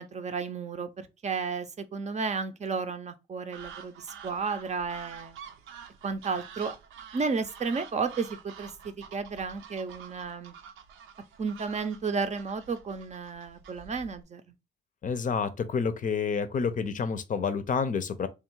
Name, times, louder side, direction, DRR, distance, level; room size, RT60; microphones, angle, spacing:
voice 1, 0.0-5.4 6.0-6.8 7.1-10.5 11.4-14.4, right 5 dB, 35° right, 0.6 m, -33 dB
sound 1, 3.5-14.2, right 7 dB, 85° right, 0.6 m, -48 dB
voice 2, 15.0-18.3, left 5 dB, 40° left, 0.6 m, -29 dB
3.4 x 2.4 x 4.5 m
cardioid pair, 90°, 20 cm